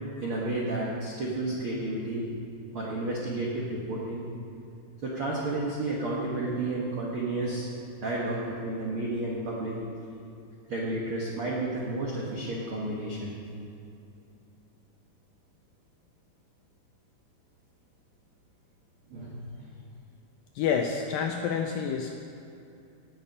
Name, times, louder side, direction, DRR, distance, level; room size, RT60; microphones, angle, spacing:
voice 1, 0.2-2.3 2.7-4.3 5.0-7.7 8.0-9.8 10.7-13.3 19.1-19.4, right 2 dB, 85° right, -4 dB, 1.1 m, -31 dB
voice 2, 20.6-22.2, left 6 dB, 85° left, 3 dB, 2.0 m, -28 dB
18.0 x 7.0 x 5.4 m, 2.7 s
omnidirectional pair, 4.8 m